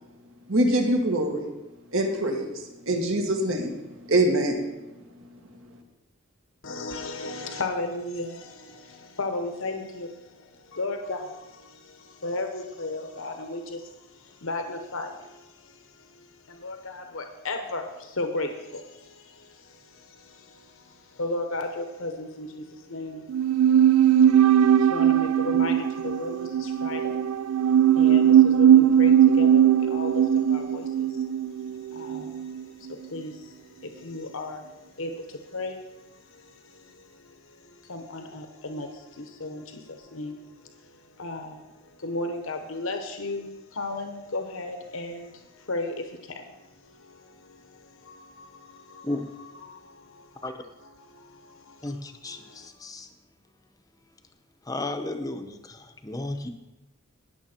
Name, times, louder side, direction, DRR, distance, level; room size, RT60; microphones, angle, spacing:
voice 1, 0.5-1.5 1.9-2.4 2.9-3.8 4.0-4.6, right 1 dB, 70° right, 1 dB, 1.9 m, -23 dB
voice 2, 6.6-27.4 27.8-31.5 31.9-49.1 49.4-50.5 50.8-51.9 52.2-52.7, left 2 dB, 70° left, 5 dB, 1.0 m, -36 dB
sound 1, 23.3-32.6 32.9-33.0, right 9 dB, 90° right, 0.4 m, -19 dB
voice 3, 51.8-53.1 54.7-56.5, left 2 dB, 15° left, 7 dB, 0.8 m, -34 dB
18.5 x 7.0 x 4.4 m, 1.0 s
head